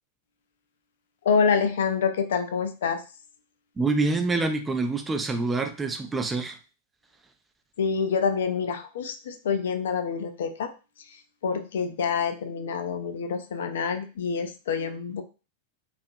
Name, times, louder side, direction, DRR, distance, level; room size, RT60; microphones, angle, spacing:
voice 1, 1.2-3.0 7.8-10.7 11.4-15.2, left 6 dB, 60° left, 8 dB, 0.3 m, -27 dB
voice 2, 3.8-6.6, right 3 dB, 15° right, 6 dB, 0.4 m, -26 dB
2.5 x 2.4 x 2.6 m, 0.32 s
figure-of-eight pair, 90°, 0 cm